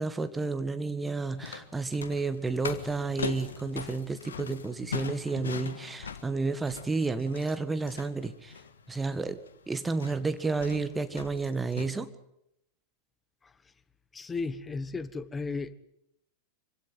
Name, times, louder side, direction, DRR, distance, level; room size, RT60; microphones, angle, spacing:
voice 1, 0.0-8.5 8.9-9.4 9.7-12.1, right 3 dB, 10° right, 11 dB, 1.7 m, -31 dB
sound 1, 1.2-11.8, left 6 dB, 70° left, 1.6 m, -41 dB
voice 2, 14.1-15.7, left 4 dB, 15° left, 15 dB, 1.2 m, -34 dB
25.5 x 16.5 x 9.5 m, 0.80 s
figure-of-eight pair, 90°, 0 cm